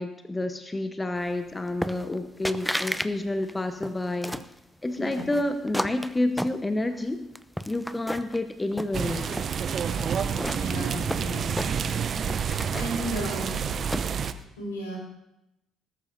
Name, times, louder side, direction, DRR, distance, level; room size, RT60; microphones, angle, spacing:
voice 1, 0.0-4.3 4.8-7.3 7.7-9.3, left 2 dB, 20° left, 8 dB, 1.0 m, -29 dB
sound 1, 1.8-2.2 2.4-3.1 3.4-4.5 5.1-7.0 7.4-8.4 8.7-9.5 10.0-12.0 12.3-14.3, equal, ahead, 0.6 m, -33 dB
voice 2, 4.9-5.3 10.5-11.5 12.7-13.6 14.6-15.0, right 1 dB, 85° left, -3 dB, 4.5 m, -34 dB
sound 2, 8.9-14.3, right 7 dB, 50° right, 0.7 m, -29 dB
19.5 x 12.0 x 2.7 m, 0.87 s
figure-of-eight pair, 45°, 0 cm